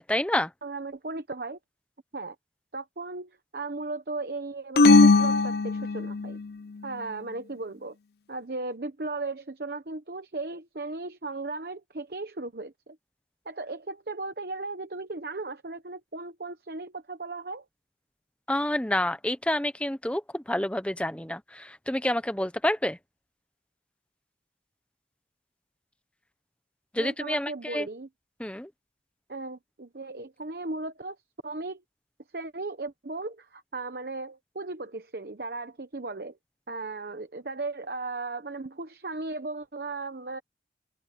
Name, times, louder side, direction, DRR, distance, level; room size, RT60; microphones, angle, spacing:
voice 1, 0.0-0.5 18.5-23.0 26.9-27.9 28.4-28.7, left 1 dB, 5° left, 0.9 m, -28 dB
voice 2, 0.6-1.6 2.1-2.4 2.7-6.4 6.8-7.9 8.3-13.0 13.5-17.6 27.0-28.1 29.3-31.2 31.4-31.8 32.3-36.4 36.7-40.4, right 3 dB, 60° right, 1.0 m, -36 dB
sound 1, 4.8-6.4, left 3 dB, 60° left, 0.6 m, -19 dB
open air
head